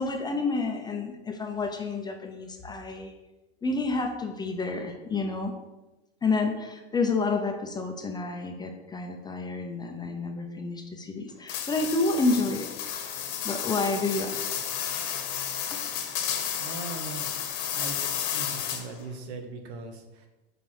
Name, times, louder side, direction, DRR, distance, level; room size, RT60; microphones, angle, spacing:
voice 1, 0.0-3.1 3.6-5.5 6.2-12.7 13.4-14.4 15.7-15.8, left 3 dB, 15° left, 3 dB, 0.7 m, -29 dB
sound 1, 11.5-19.0, left 9 dB, 50° left, 1.2 m, -32 dB
voice 2, 16.6-17.3 17.7-20.3, right 3 dB, 80° right, 5 dB, 1.4 m, -40 dB
5.5 x 4.7 x 6.0 m, 1.1 s
supercardioid pair, 140°, 32 cm